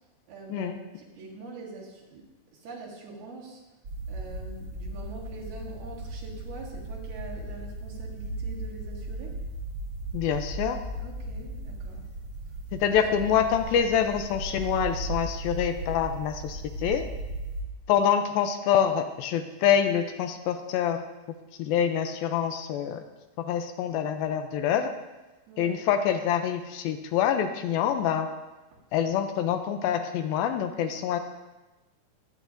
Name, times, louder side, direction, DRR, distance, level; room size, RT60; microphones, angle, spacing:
voice 1, 0.3-3.6 4.1-9.4 11.0-12.1 12.9-13.4 25.5-25.8, right 3 dB, 75° right, -4 dB, 3.9 m, -44 dB
sound 1, 3.8-17.6, right 2 dB, 40° right, 2.0 m, -36 dB
voice 2, 10.1-10.8 12.7-17.1 17.9-21.1 21.6-23.0 23.4-24.9 25.6-28.3 28.9-31.2, left 8 dB, 80° left, 7 dB, 2.3 m, -26 dB
22.5 x 8.6 x 2.6 m, 1.1 s
omnidirectional pair, 4.5 m